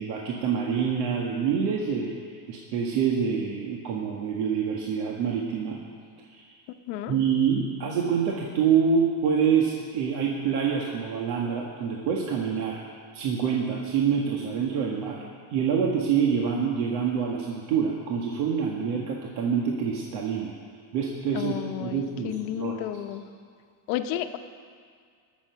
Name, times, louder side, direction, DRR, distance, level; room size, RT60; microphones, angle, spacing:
voice 1, 0.0-2.2 2.5-5.8 6.3-6.5 7.1-12.8 13.1-15.2 15.5-20.5 20.9-22.8, right 6 dB, 75° right, -2 dB, 1.8 m, -26 dB
voice 2, 21.3-23.2 23.9-24.4, left 11 dB, 80° left, 8 dB, 1.1 m, -32 dB
21.0 x 7.3 x 5.8 m, 2.1 s
supercardioid pair, 120°, 50 cm